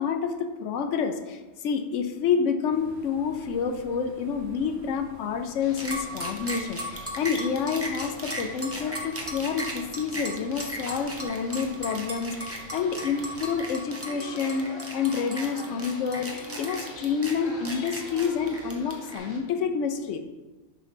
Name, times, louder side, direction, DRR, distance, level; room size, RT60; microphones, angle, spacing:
voice 1, 0.0-20.2, left 6 dB, 70° left, 6 dB, 0.9 m, -28 dB
sound 1, 2.7-13.6, equal, 55° right, 1.1 m, -49 dB
sound 2, 5.6-19.4, left 1 dB, 40° left, 1.1 m, -45 dB
sound 3, 5.8-19.2, right 1 dB, 15° right, 0.6 m, -36 dB
6.7 x 3.1 x 5.7 m, 1.2 s
omnidirectional pair, 1.4 m